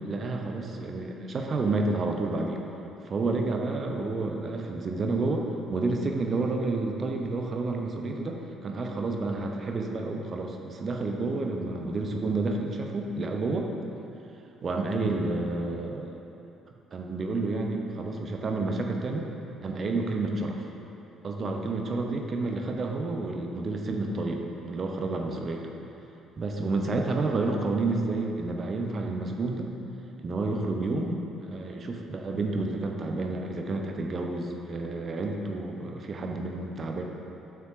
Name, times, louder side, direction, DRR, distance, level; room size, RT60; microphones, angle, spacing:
voice 1, 0.0-2.6 3.0-13.7 14.6-16.2 16.9-19.3 19.6-20.6 21.2-25.7 26.4-29.7 30.2-31.2 31.4-37.0, right 3 dB, 40° right, 2 dB, 0.9 m, -30 dB
7.0 x 6.5 x 5.9 m, 2.9 s
figure-of-eight pair, 50°, 0 cm